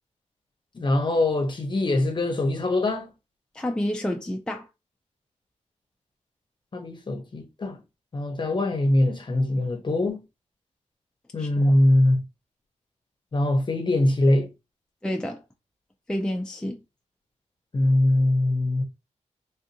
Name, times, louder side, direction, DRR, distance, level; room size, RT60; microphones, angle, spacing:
voice 1, 0.7-3.1 6.7-7.8 8.1-10.2 11.3-12.2 13.3-14.5 17.7-18.8, left 1 dB, 40° left, 0.8 m, -22 dB
voice 2, 3.5-4.7 11.4-11.8 15.0-15.4 16.1-16.8, left 1 dB, 5° left, 0.4 m, -29 dB
3.5 x 2.5 x 2.9 m
wide cardioid pair, 110°, 12 cm